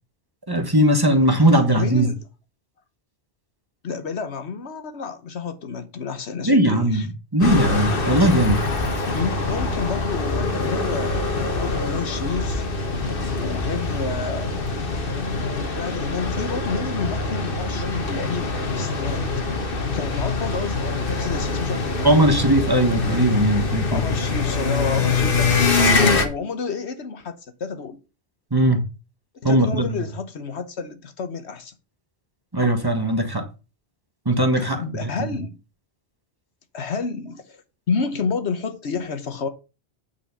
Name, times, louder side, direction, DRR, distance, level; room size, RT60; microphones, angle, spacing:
voice 1, 0.5-2.1 6.4-8.6 22.0-24.0 28.5-28.8 29.4-29.9 32.5-33.5 34.2-35.1, right 1 dB, 20° right, 1.3 m, -19 dB
voice 2, 1.8-2.2 3.8-7.1 8.4-8.5 9.1-12.7 13.4-14.5 15.6-19.3 19.9-22.2 23.9-28.0 29.4-31.7 34.6-35.6 36.7-37.6 37.9-39.5, left 5 dB, 80° left, 1.4 m, -30 dB
sound 1, 7.4-26.3, left 3 dB, 55° left, 1.4 m, -24 dB
8.7 x 4.8 x 5.5 m
omnidirectional pair, 1.1 m